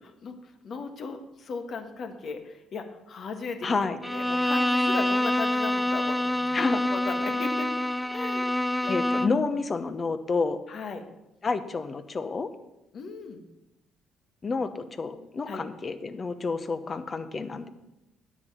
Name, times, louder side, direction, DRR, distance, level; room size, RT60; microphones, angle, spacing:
voice 1, 0.0-6.6 6.9-7.7 8.1-8.5 8.7-9.0 10.7-11.0 12.9-13.4 15.5-15.6, left 4 dB, 60° left, 6 dB, 1.5 m, -37 dB
voice 2, 3.6-4.0 6.5-6.8 8.9-10.6 11.4-12.5 14.4-17.7, left 4 dB, 40° left, 11 dB, 1.0 m, -29 dB
Bowed string instrument, 4.0-9.5, left 1 dB, 5° left, 0.5 m, -26 dB
9.6 x 8.3 x 5.6 m, 0.93 s
supercardioid pair, 60°, 0 cm